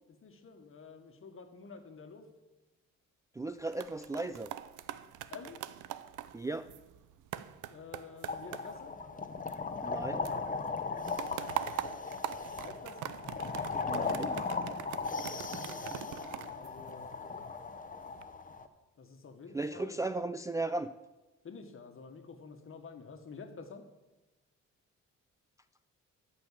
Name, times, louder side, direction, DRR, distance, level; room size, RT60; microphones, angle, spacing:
voice 1, 0.2-2.2 5.3-5.6 7.7-9.0 12.6-13.1 15.5-17.1 19.0-20.0 21.4-23.8, left 5 dB, 45° left, 6 dB, 1.6 m, -49 dB
voice 2, 3.4-4.5 6.3-6.7 9.8-10.2 13.9-14.4 19.5-20.9, right 2 dB, 10° right, 9 dB, 0.4 m, -36 dB
sound 1, 3.5-10.0 10.2-17.4 17.9-18.2, right 12 dB, 85° right, 0.6 m, -43 dB
sound 2, 8.3-18.7, left 4 dB, 25° left, 0.9 m, -37 dB
13.0 x 5.6 x 7.4 m, 1.1 s
cardioid pair, 90°, 30 cm